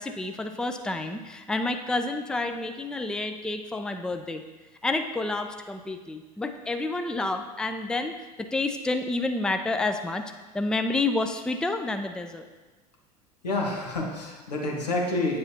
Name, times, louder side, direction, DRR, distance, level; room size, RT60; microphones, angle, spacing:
voice 1, 0.0-4.4 4.8-10.2 10.5-12.5, left 2 dB, 5° left, 6 dB, 0.4 m, -29 dB
voice 2, 13.4-15.4, left 2 dB, 90° left, -1 dB, 1.4 m, -28 dB
8.8 x 6.7 x 2.8 m, 1.3 s
hypercardioid pair, 75°, 20 cm